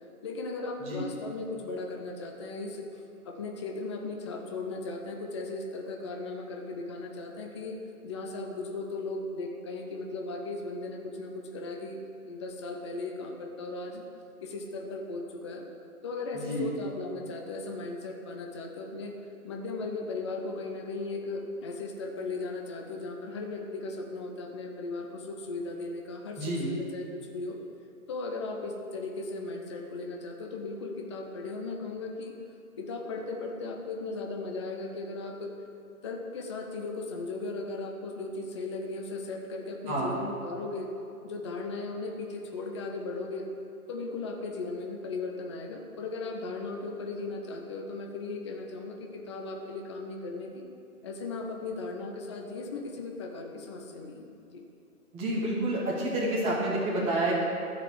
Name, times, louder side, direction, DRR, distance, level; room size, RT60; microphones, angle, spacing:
voice 1, 0.2-14.0 14.4-15.7 16.0-19.2 19.4-27.6 28.1-32.4 32.8-35.5 36.0-40.9 41.2-43.5 43.9-50.6 51.0-54.6, left 3 dB, 20° left, 1 dB, 0.6 m, -37 dB
voice 2, 16.3-16.7 26.4-26.7 39.9-40.2 55.1-57.3, right 1 dB, 15° right, -5 dB, 1.4 m, -29 dB
13.5 x 5.0 x 7.5 m, 2.6 s
hypercardioid pair, 150°, 44 cm